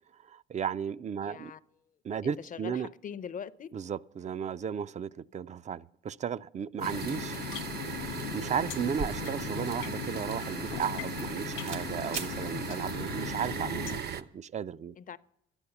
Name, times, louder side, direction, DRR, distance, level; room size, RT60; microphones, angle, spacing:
voice 1, 0.2-1.5 2.0-2.9 3.7-7.4 7.9-14.9, right 7 dB, 35° right, 0.4 m, -35 dB
voice 2, 1.2-1.6 2.2-3.7 6.9-7.1 15.0-15.2, left 7 dB, 45° left, 0.6 m, -42 dB
sound 1, 6.8-14.0, left 14 dB, 90° left, 0.5 m, -39 dB
sound 2, 6.8-14.2, right 7 dB, 55° right, 0.8 m, -38 dB
sound 3, 9.0-11.3 11.6-11.9 12.1-12.4, right 4 dB, 90° right, 1.6 m, -41 dB
12.5 x 9.9 x 6.9 m
cardioid pair, 90°, 20 cm